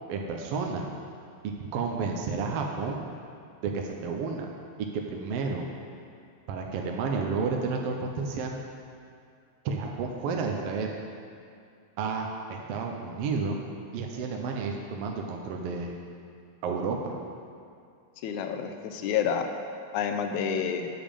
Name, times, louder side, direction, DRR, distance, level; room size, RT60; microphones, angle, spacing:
voice 1, 0.1-0.9 1.4-3.0 3.6-4.5 4.8-5.7 6.5-8.6 9.6-11.0 12.0-13.6 13.9-15.9 16.6-17.2, right 4 dB, 75° right, 1 dB, 1.4 m, -31 dB
voice 2, 18.2-19.5 19.9-20.9, left 7 dB, 90° left, 6 dB, 2.0 m, -29 dB
8.9 x 6.9 x 5.1 m, 2.4 s
omnidirectional pair, 3.3 m